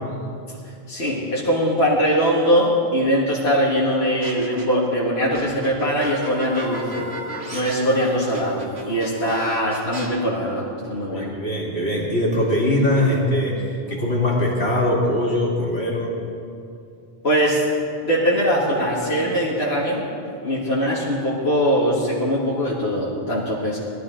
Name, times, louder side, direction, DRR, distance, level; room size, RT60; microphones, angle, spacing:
voice 1, 0.6-7.1 7.5-11.3 17.2-17.6 18.0-20.0 20.4-23.8, equal, 75° left, -7 dB, 2.1 m, -21 dB
sound 1, 4.2-4.9 5.3-10.1, right 3 dB, 80° right, 1.9 m, -36 dB
sound 2, 5.9-10.7, equal, 20° right, 2.6 m, -36 dB
voice 2, 11.1-16.2, left 1 dB, 90° left, -3 dB, 2.8 m, -22 dB
20.0 x 12.5 x 3.8 m, 2.5 s
omnidirectional pair, 1.1 m